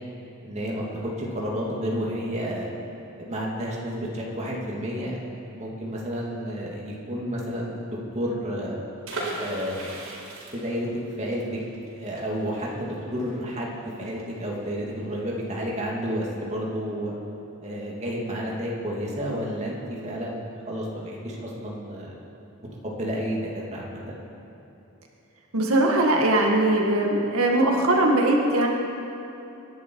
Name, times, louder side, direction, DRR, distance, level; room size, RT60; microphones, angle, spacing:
voice 1, 0.4-2.7 3.2-8.8 9.4-10.0 10.5-10.9 11.2-11.6 11.9-17.1 17.6-22.2 22.8-24.0, equal, 30° right, -4 dB, 2.6 m, -31 dB
sound 1, 9.0-14.7 15.0-15.1 15.3-15.6, right 2 dB, 65° right, 4.6 m, -37 dB
voice 2, 25.5-28.7, right 1 dB, 85° right, -1 dB, 1.9 m, -20 dB
26.0 x 11.0 x 4.7 m, 2.9 s
head